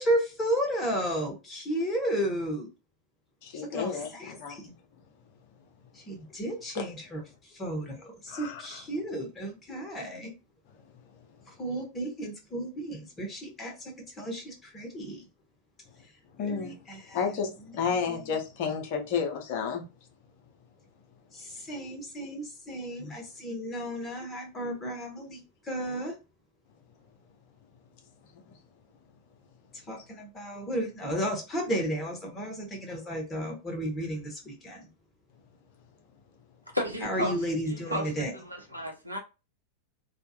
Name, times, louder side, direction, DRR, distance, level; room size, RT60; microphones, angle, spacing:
voice 1, 0.0-2.7 3.5-4.7 5.9-10.3 11.5-15.2 16.4-17.2 21.3-26.1 29.9-34.9 37.0-38.3, right 1 dB, 20° left, 1.0 m, -33 dB
voice 2, 3.4-4.6 6.7-6.8 8.3-8.8 16.4-16.8 17.1-19.8 23.0-23.1 28.3-28.4, left 6 dB, 50° left, 0.7 m, -31 dB
voice 3, 36.7-37.4 37.7-39.2, equal, 90° right, 0.6 m, -33 dB
2.4 x 2.3 x 2.7 m
figure-of-eight pair, 90°, 0 cm